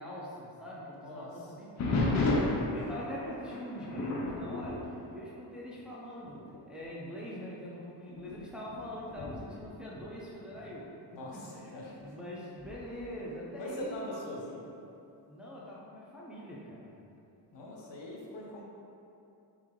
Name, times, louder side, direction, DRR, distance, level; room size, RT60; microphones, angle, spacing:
voice 1, 0.0-4.8 5.1-10.9 11.3-14.1 15.3-16.9, equal, ahead, -6 dB, 0.5 m, -43 dB
voice 2, 1.0-1.5 2.8-2.9 4.8-4.9 11.1-12.0 13.6-14.7 17.5-18.6, left 1 dB, 75° left, -4 dB, 1.0 m, -42 dB
sound 1, 1.8-5.9 6.3-6.6 7.2-7.3 8.1-10.8 12.6-13.1, left 2 dB, 40° left, 0.6 m, -34 dB
3.7 x 3.5 x 3.1 m, 2.7 s
cardioid pair, 120°, 43 cm